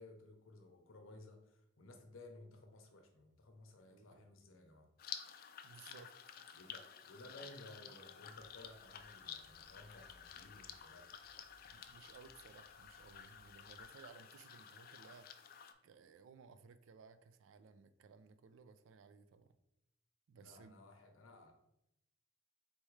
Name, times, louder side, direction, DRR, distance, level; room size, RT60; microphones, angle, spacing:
voice 1, 0.0-4.9 6.5-11.1 20.4-21.6, left 2 dB, 90° left, 5 dB, 0.7 m, -57 dB
voice 2, 3.9-4.3 5.6-6.1 11.7-15.3 15.8-19.6 20.3-20.7, right 5 dB, 75° right, 12 dB, 0.3 m, -60 dB
sound 1, 5.0-15.7, left 8 dB, 45° left, 0.3 m, -52 dB
sound 2, 8.3-13.8, equal, 10° left, 0.6 m, -70 dB
4.2 x 3.4 x 3.2 m, 0.83 s
head